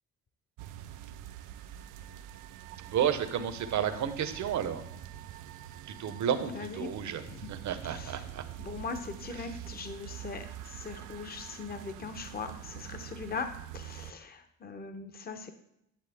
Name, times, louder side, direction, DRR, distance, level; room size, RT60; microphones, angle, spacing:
sound 1, 0.6-14.1, right 12 dB, 85° right, 0.5 m, -45 dB
voice 1, 2.8-4.8 5.8-7.2 7.5-8.4 9.3-9.5, right 8 dB, 70° right, 9 dB, 1.0 m, -32 dB
voice 2, 6.5-7.5 7.8-8.2 8.6-15.5, left 4 dB, 30° left, 8 dB, 0.8 m, -40 dB
10.5 x 7.4 x 3.5 m, 0.78 s
cardioid pair, 90°, 30 cm